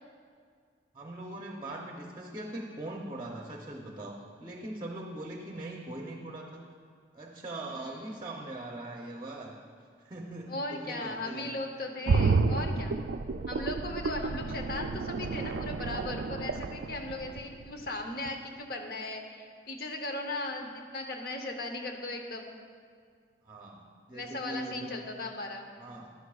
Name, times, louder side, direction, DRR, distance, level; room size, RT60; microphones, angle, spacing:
voice 1, 0.9-6.6 7.1-9.5 10.0-11.5 23.4-25.1 25.8-26.1, right 1 dB, 25° right, 0 dB, 0.6 m, -41 dB
voice 2, 7.7-8.3 10.5-13.0 13.5-22.6 24.1-25.7, left 2 dB, 55° left, 4 dB, 0.9 m, -37 dB
sound 1, 12.1-17.9 18.3-18.4, right 4 dB, 75° right, 0.3 m, -30 dB
11.0 x 11.0 x 2.4 m, 2.1 s
head